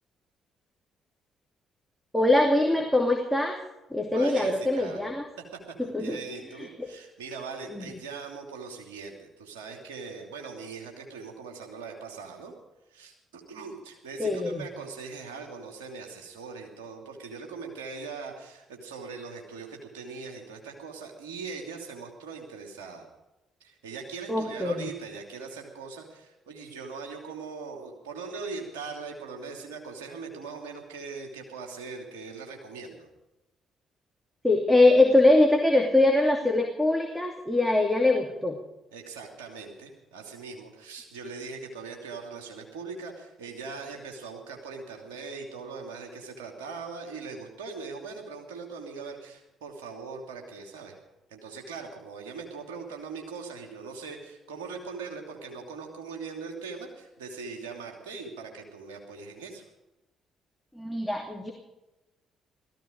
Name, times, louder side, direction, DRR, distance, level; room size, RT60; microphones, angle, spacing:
voice 1, 2.1-3.6 3.9-5.3 5.8-6.2 6.6-6.9 7.7-7.9 14.2-14.7 24.3-24.9 34.4-38.6 60.7-61.5, left 2 dB, 5° left, 1 dB, 2.8 m, -23 dB
voice 2, 4.1-5.0 5.8-12.5 12.9-23.1 23.6-33.1 38.9-51.0 51.3-59.6, right 4 dB, 80° right, 2 dB, 2.8 m, -40 dB
17.0 x 14.5 x 5.2 m, 0.99 s
hypercardioid pair, 45°, 0 cm